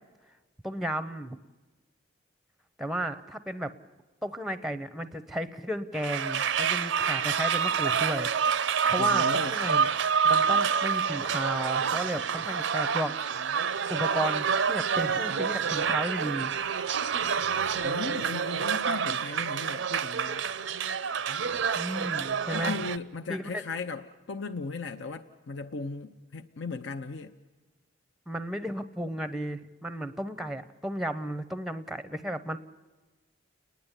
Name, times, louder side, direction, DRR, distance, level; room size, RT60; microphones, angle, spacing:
voice 1, 0.6-1.4 2.8-3.7 4.2-8.3 8.9-9.9 10.2-13.5 13.9-16.5 21.7-22.8 23.3-23.6 28.3-32.6, right 1 dB, ahead, 13 dB, 0.6 m, -34 dB
sound 1, 5.9-23.0, right 6 dB, 75° right, 0.6 m, -27 dB
voice 2, 9.0-9.6 17.8-20.4 22.3-27.3, left 4 dB, 70° left, 5 dB, 0.7 m, -37 dB
30.0 x 10.5 x 9.8 m, 1.2 s
head